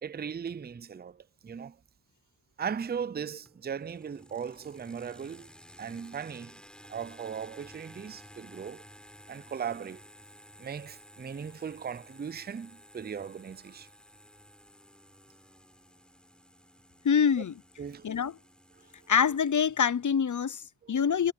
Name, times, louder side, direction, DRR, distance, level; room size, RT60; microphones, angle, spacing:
voice 1, 0.0-1.8 2.6-5.5 5.8-6.6 6.9-8.8 9.3-10.0 10.6-13.9 17.4-17.5 17.8-18.1 20.8-21.0, right 7 dB, 20° right, 0.4 m, -38 dB
sound 1, 3.5-20.2, equal, ahead, 5.8 m, -54 dB
voice 2, 17.0-17.6 18.0-18.3 19.1-20.6 20.9-21.3, left 7 dB, 40° left, 0.5 m, -25 dB
wide cardioid pair, 105°, 48 cm